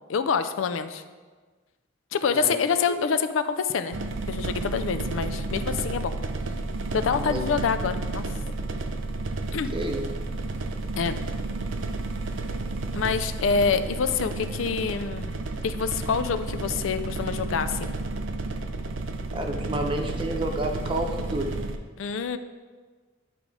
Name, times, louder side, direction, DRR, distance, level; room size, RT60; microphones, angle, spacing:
voice 1, 0.1-1.0 2.1-4.0 4.3-6.1 6.9-8.2 9.5-9.8 11.0-11.2 13.0-15.3 15.6-17.9 22.0-22.4, left 6 dB, 80° left, 10 dB, 0.4 m, -26 dB
sound 1, 3.9-21.8, right 2 dB, 70° right, 0.6 m, -31 dB
voice 2, 9.7-10.0 19.3-21.5, right 1 dB, 25° right, 3 dB, 0.8 m, -29 dB
10.0 x 3.8 x 4.8 m, 1.4 s
head